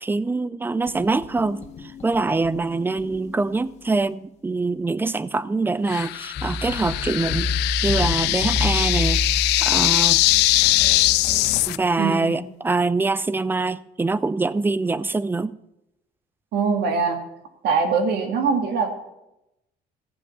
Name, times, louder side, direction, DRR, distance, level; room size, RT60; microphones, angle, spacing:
voice 1, 0.0-1.6 2.0-7.5 7.8-9.2 9.6-10.2 11.7-15.5, right 3 dB, 10° right, 0.4 m, -24 dB
sound 1, 0.9-3.8 6.4-11.6, left 2 dB, 40° left, 1.7 m, -30 dB
sound 2, 5.9-11.8, left 19 dB, 90° left, 0.5 m, -21 dB
voice 2, 12.0-12.4 16.5-17.2 17.6-18.9, right 5 dB, 75° right, 2.1 m, -22 dB
14.5 x 7.4 x 6.9 m
cardioid pair, 110°, 17 cm